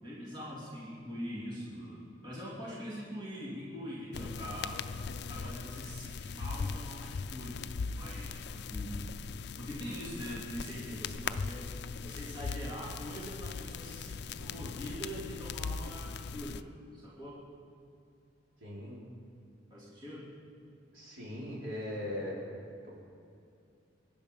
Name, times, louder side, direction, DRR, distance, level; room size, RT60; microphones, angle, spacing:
voice 1, 0.0-4.8 5.3-7.7 8.0-9.1 9.6-11.7 12.0-17.4 19.7-20.3, equal, 25° right, -7 dB, 3.0 m, -43 dB
sound 1, 4.1-16.6, left 5 dB, 60° left, 0.4 m, -39 dB
voice 2, 18.6-19.0 20.9-22.4 22.8-22.9, left 1 dB, 75° right, -5 dB, 4.8 m, -39 dB
22.5 x 10.5 x 5.4 m, 2.5 s
head